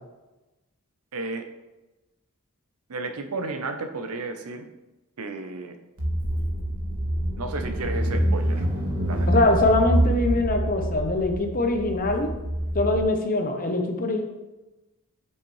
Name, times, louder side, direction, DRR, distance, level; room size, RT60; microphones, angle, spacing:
voice 1, 1.1-1.5 2.9-4.7 5.2-5.8 7.4-8.7 9.1-9.4, right 3 dB, 85° right, 6 dB, 0.8 m, -33 dB
Car / Engine, 6.0-13.0, right 1 dB, 70° right, 1.5 m, -26 dB
voice 2, 9.3-12.3 12.7-14.2, left 2 dB, 40° left, 4 dB, 0.9 m, -23 dB
7.1 x 6.5 x 3.2 m, 1.1 s
head